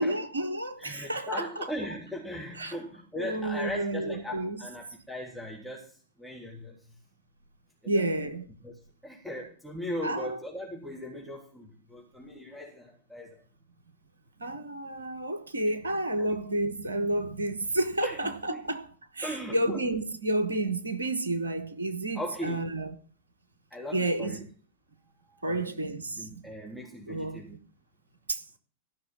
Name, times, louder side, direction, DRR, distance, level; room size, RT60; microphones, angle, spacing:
voice 1, 0.0-1.7 2.6-2.7 3.1-4.6 7.9-8.4 10.0-10.4 14.4-18.9 19.1-23.0 23.9-24.4 25.4-26.3 27.1-27.4 28.3-28.4, right 1 dB, 75° right, 1.2 m, -30 dB
voice 2, 0.8-6.8 7.8-8.1 8.6-8.7 9.0-13.4 16.2-16.3 18.0-18.6 19.2-19.8 22.1-22.8 23.7-24.5 25.3-25.7 26.2-27.6, equal, ahead, 3.3 m, -39 dB
14.0 x 6.2 x 7.5 m
figure-of-eight pair, 90°, 0 cm